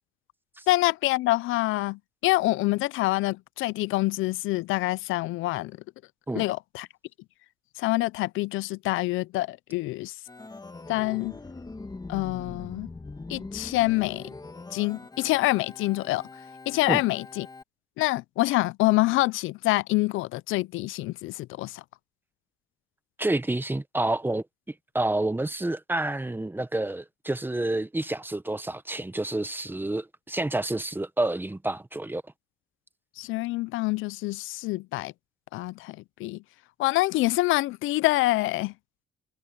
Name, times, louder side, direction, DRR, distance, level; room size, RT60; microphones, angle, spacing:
voice 1, 0.7-5.8 6.3-6.9 7.8-10.1 10.9-11.3 12.1-12.9 13.3-14.3 14.7-16.3 16.7-17.5 18.0-21.8 33.2-35.1 35.5-36.4 36.8-38.7, left 19 dB, 85° left, 0.4 m, -26 dB
Organ, 10.3-17.6, left 3 dB, 20° left, 1.8 m, -42 dB
voice 2, 23.2-24.4 24.9-32.2, right 2 dB, 10° right, 1.1 m, -29 dB
cardioid pair, 90°, 20 cm